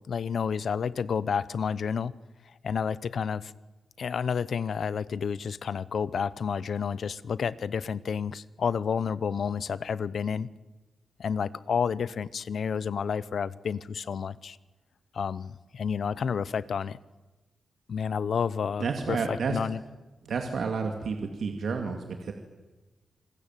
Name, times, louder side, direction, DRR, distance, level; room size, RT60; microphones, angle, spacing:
voice 1, 0.1-2.1 2.6-3.5 4.0-10.5 11.2-14.6 15.1-17.0 17.9-19.8, left 6 dB, 65° left, 18 dB, 0.8 m, -30 dB
voice 2, 18.8-19.6 20.2-22.3, right 5 dB, 70° right, 4 dB, 2.4 m, -30 dB
27.5 x 20.5 x 9.1 m, 1.2 s
wide cardioid pair, 150°, 0 cm